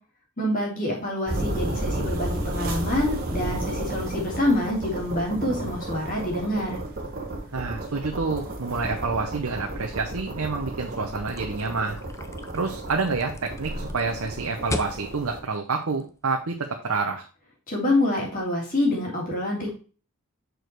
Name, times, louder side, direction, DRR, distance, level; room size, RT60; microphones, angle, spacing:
voice 1, 0.4-6.8 17.7-19.7, left 1 dB, 40° left, -3 dB, 3.1 m, -26 dB
sound 1, 1.3-15.4, right 1 dB, 45° right, 1.5 m, -33 dB
voice 2, 7.5-12.0 12.5-16.5 16.8-17.2, right 4 dB, 70° right, 3 dB, 0.8 m, -28 dB
sound 2, 11.3-16.6, left 2 dB, 15° left, 0.5 m, -38 dB
6.3 x 5.1 x 4.5 m, 0.37 s
head